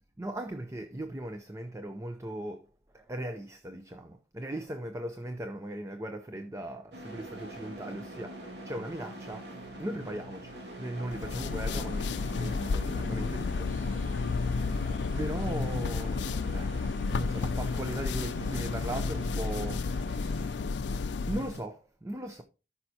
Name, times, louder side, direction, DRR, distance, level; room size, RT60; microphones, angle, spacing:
voice 1, 0.2-2.7 2.9-14.2 15.1-22.4, right 1 dB, 15° right, 0.5 m, -39 dB
sound 1, 6.9-20.6, right 1 dB, 80° right, 2.1 m, -45 dB
sound 2, 11.1-21.6, left 4 dB, 80° left, 0.4 m, -31 dB
13.5 x 5.5 x 2.8 m
head